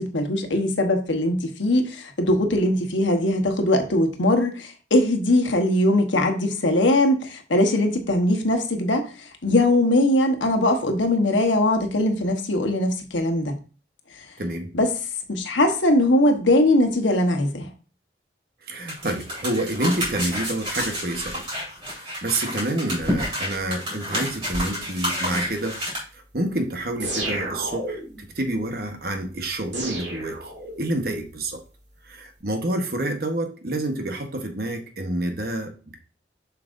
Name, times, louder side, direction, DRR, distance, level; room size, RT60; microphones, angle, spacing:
voice 1, 0.0-13.6 14.2-14.3 14.7-14.9 15.3-17.7, left 1 dB, 90° left, 1.1 m, -21 dB
voice 2, 14.4-14.7 18.6-21.5 22.0-25.8 26.1-28.0 28.3-30.5 30.8-31.6 32.0-36.0, right 1 dB, 55° right, 1.0 m, -28 dB
sound 1, 18.9-26.0, equal, 30° right, 3.9 m, -29 dB
sound 2, 27.0-28.2 29.7-31.0, right 2 dB, 80° right, 2.2 m, -31 dB
7.4 x 5.9 x 2.6 m
head